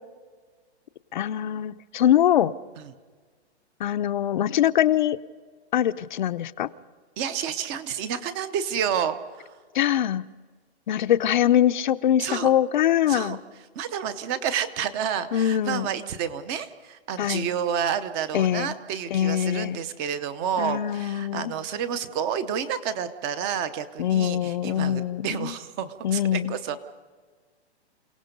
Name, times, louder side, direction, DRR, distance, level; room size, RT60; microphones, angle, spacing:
voice 1, 1.1-2.5 3.8-5.2 5.7-6.7 9.7-10.2 10.9-13.4 15.3-15.9 17.2-17.5 18.3-18.7 19.1-19.8 20.6-21.5 24.0-25.5 26.0-26.5, left 11 dB, 45° left, 13 dB, 0.7 m, -23 dB
voice 2, 7.2-9.6 12.2-12.5 13.1-13.4 13.7-26.8, right 8 dB, 15° right, 13 dB, 0.7 m, -30 dB
29.0 x 17.5 x 5.3 m, 1.5 s
hypercardioid pair, 165°, 34 cm